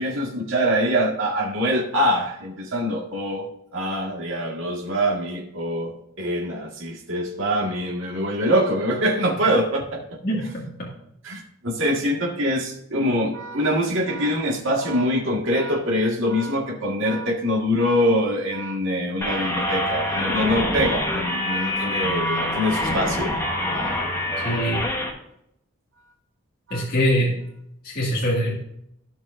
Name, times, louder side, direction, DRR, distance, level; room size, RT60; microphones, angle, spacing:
voice 1, 0.0-10.0 11.2-23.4 23.7-24.0 24.5-24.6 26.7-26.8, equal, 65° right, -1 dB, 1.9 m, -24 dB
voice 2, 10.2-10.9 24.4-24.8 26.7-27.4 27.8-28.6, equal, 45° left, -6 dB, 2.1 m, -23 dB
sound 1, 19.2-25.1, left 1 dB, 15° left, 1.3 m, -25 dB
16.0 x 5.4 x 2.6 m, 0.76 s
head